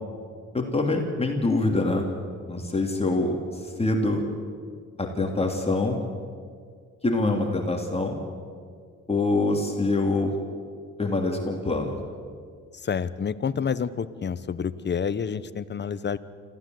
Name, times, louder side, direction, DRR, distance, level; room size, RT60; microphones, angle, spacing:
voice 1, 0.5-2.1 2.5-4.2 5.0-6.0 7.0-8.2 9.1-10.3 11.0-12.0, left 2 dB, 20° left, 2 dB, 3.0 m, -25 dB
voice 2, 12.8-16.2, left 6 dB, 35° left, 15 dB, 1.0 m, -28 dB
25.5 x 15.5 x 7.8 m, 2.1 s
cardioid pair, 90°, 30 cm